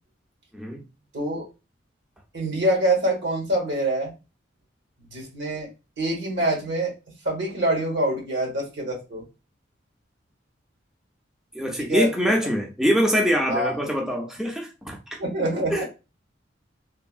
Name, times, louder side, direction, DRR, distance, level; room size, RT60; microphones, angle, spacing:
voice 1, 1.1-1.4 2.3-4.1 5.1-5.7 6.0-6.9 7.2-9.2 11.8-12.1 13.5-13.7 15.2-15.9, right 1 dB, 75° right, 1.2 m, -25 dB
voice 2, 11.5-15.2 15.7-15.8, equal, 5° right, 0.3 m, -24 dB
3.2 x 2.0 x 2.3 m
head